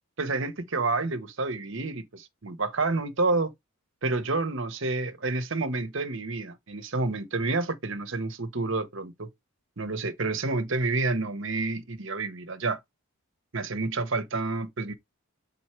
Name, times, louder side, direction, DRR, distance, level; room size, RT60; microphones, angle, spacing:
voice 1, 0.2-3.5 4.0-9.3 9.8-12.8 13.5-14.9, right 3 dB, 60° right, 0.9 m, -29 dB
7.8 x 3.9 x 4.4 m
head